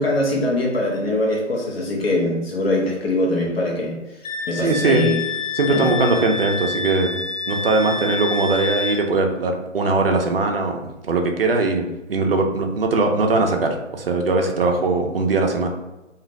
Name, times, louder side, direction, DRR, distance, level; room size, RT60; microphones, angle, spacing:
voice 1, 0.0-4.0 4.5-5.2 5.7-5.8, left 1 dB, 55° left, -1 dB, 0.9 m, -22 dB
Wind instrument woodwind instrument, 4.2-9.0, left 4 dB, 90° left, 0.6 m, -28 dB
voice 2, 4.5-5.1 5.6-7.2 7.5-15.7, right 3 dB, 50° right, 3 dB, 0.5 m, -20 dB
2.5 x 2.4 x 3.0 m, 1.0 s
figure-of-eight pair, 155°, 37 cm